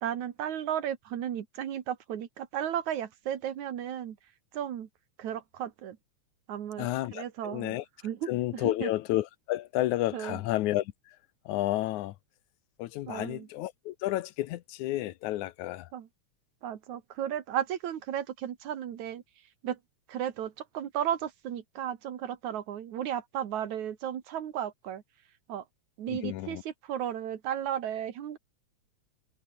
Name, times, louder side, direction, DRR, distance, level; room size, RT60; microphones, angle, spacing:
voice 1, 0.0-4.2 4.5-4.9 5.2-6.0 6.5-7.8 8.0-8.9 10.1-10.4 13.1-13.5 15.9-16.1 16.6-19.2 19.6-19.8 20.1-25.0 25.5-25.6 26.0-28.4, right 10 dB, 80° right, 3.1 m, -34 dB
voice 2, 6.8-7.8 8.3-10.9 11.5-12.1 12.8-15.9 26.1-26.6, left 15 dB, 85° left, 2.3 m, -31 dB
omnidirectional pair, 3.3 m